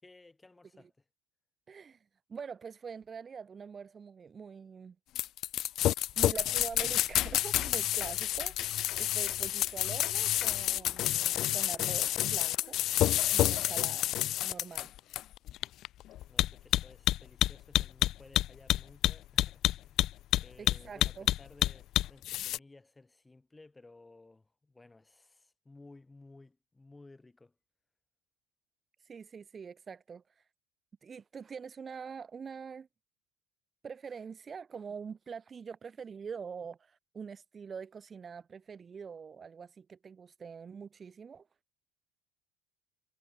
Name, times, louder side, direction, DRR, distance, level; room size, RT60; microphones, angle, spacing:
voice 1, 0.0-1.0 16.3-20.1 20.4-27.5, left 2 dB, 15° left, 6.7 m, -57 dB
voice 2, 1.7-5.0 6.2-12.8 13.3-14.2 14.4-14.9 20.6-21.3 29.0-30.4 31.0-32.9 33.8-41.5, right 6 dB, 30° right, 1.0 m, -44 dB
sound 1, 5.1-22.6, left 14 dB, 55° left, 0.6 m, -29 dB
hypercardioid pair, 70°, 0 cm